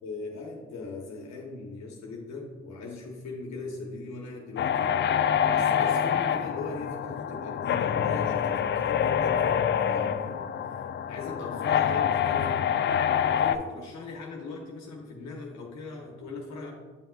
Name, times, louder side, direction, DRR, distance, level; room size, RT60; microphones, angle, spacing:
voice 1, 0.0-5.0 5.5-16.7, left 3 dB, 70° left, 0 dB, 1.0 m, -39 dB
sound 1, 4.6-13.6, left 8 dB, 40° left, 0.4 m, -26 dB
8.7 x 5.5 x 2.3 m, 1.4 s
supercardioid pair, 60°, 29 cm